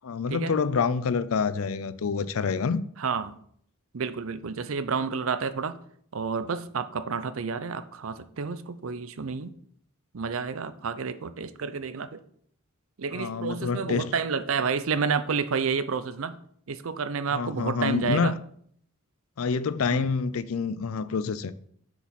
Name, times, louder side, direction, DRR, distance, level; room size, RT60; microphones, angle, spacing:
voice 1, 0.0-2.8 13.1-14.1 17.3-18.3 19.4-21.5, left 5 dB, 75° left, 0.5 m, -27 dB
voice 2, 3.0-3.3 3.9-5.8 6.1-9.5 10.1-12.2 13.0-16.4 16.7-18.3 19.9-20.0, right 5 dB, 70° right, 0.6 m, -30 dB
6.8 x 4.9 x 5.9 m
head